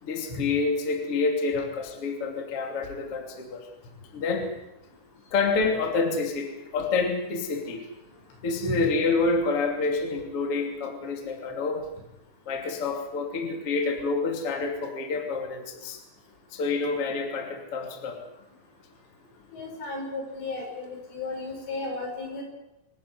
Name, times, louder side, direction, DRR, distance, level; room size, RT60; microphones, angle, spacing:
voice 1, 0.0-3.7 4.1-4.5 5.3-7.8 8.4-11.8 12.5-16.0 16.5-18.2, left 4 dB, 35° left, 3 dB, 2.9 m, -28 dB
voice 2, 19.5-22.4, left 3 dB, 70° left, 1 dB, 8.8 m, -34 dB
24.5 x 14.0 x 9.6 m, 0.93 s
omnidirectional pair, 5.8 m